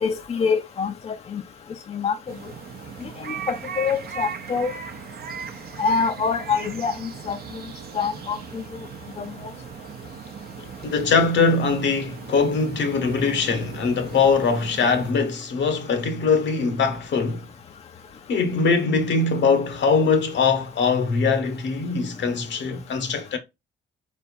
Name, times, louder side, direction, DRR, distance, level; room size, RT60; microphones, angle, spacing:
voice 1, 0.0-1.4 1.9-2.2 3.5-4.7 5.8-6.9 7.3-7.4 8.0-8.4 9.2-9.3, left 5 dB, 30° left, 0.5 m, -24 dB
sound 1, 2.3-15.1, right 7 dB, 50° right, 0.7 m, -38 dB
voice 2, 10.8-17.4 18.3-23.4, left 4 dB, 65° left, 1.0 m, -22 dB
4.3 x 3.4 x 2.5 m
cardioid pair, 90°, 20 cm